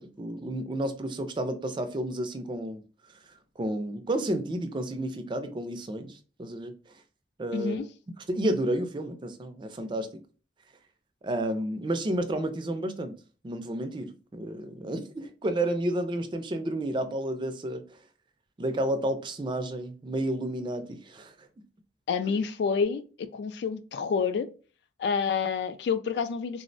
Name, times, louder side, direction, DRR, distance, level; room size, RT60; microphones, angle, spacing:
voice 1, 0.0-2.8 3.6-6.7 7.4-7.8 8.3-10.1 11.2-13.2 13.4-18.0 18.6-21.3, right 1 dB, 25° right, 0.4 m, -31 dB
voice 2, 7.5-7.9 22.1-23.0 23.3-24.5 25.0-26.6, left 5 dB, 70° left, 0.3 m, -28 dB
3.5 x 2.0 x 2.5 m
head